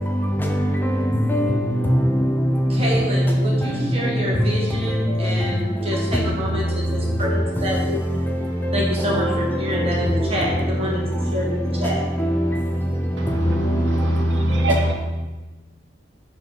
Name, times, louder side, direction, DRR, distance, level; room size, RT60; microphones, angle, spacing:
voice 1, 0.4-1.0 1.3-3.6 4.1-4.2 7.8-7.9 8.3-8.4 8.6-9.5 9.7-9.9 11.8-11.9 12.2-12.5 13.3-13.9 14.2-14.3 14.6-14.7, equal, 10° left, 1 dB, 0.4 m, -21 dB
voice 2, 2.7-8.0 8.7-11.0 11.3-12.0, equal, 30° right, -4 dB, 1.3 m, -27 dB
voice 3, 13.2-14.9, right 2 dB, 85° right, 3 dB, 0.7 m, -29 dB
4.7 x 4.1 x 4.8 m, 1.2 s
head